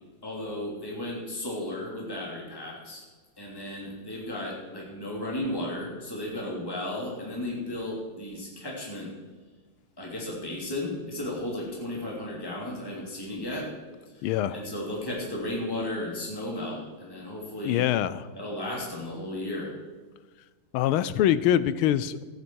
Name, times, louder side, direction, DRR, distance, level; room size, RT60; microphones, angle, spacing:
voice 1, 0.2-3.0 3.4-9.1 10.0-13.7 14.5-17.8 18.4-19.7, left 1 dB, 10° left, -3 dB, 2.9 m, -34 dB
voice 2, 14.2-14.6 17.6-18.3 20.7-22.2, left 11 dB, 80° left, 15 dB, 1.4 m, -24 dB
14.5 x 9.4 x 4.6 m, 1.4 s
omnidirectional pair, 2.4 m